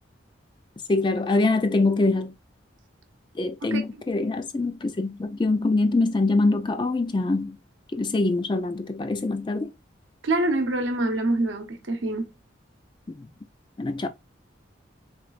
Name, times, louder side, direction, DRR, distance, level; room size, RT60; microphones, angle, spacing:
voice 1, 0.9-2.3 3.4-7.6 7.9-9.7 13.2-13.3 13.8-14.1, left 2 dB, 25° left, 0.3 m, -24 dB
voice 2, 10.2-12.3, right 2 dB, 80° right, 0.8 m, -25 dB
3.9 x 3.2 x 2.4 m
head